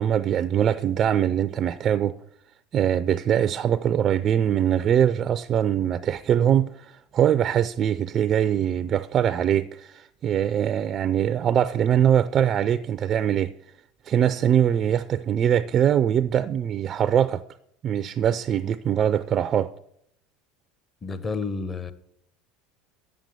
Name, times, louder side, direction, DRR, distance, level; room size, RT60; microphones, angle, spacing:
voice 1, 0.0-2.1 2.7-13.5 14.1-17.4 17.8-19.7, right 9 dB, 40° right, 0.4 m, -22 dB
voice 2, 21.0-21.9, left 4 dB, 25° left, 1.0 m, -30 dB
8.8 x 7.5 x 6.7 m
hypercardioid pair, 85°, 0 cm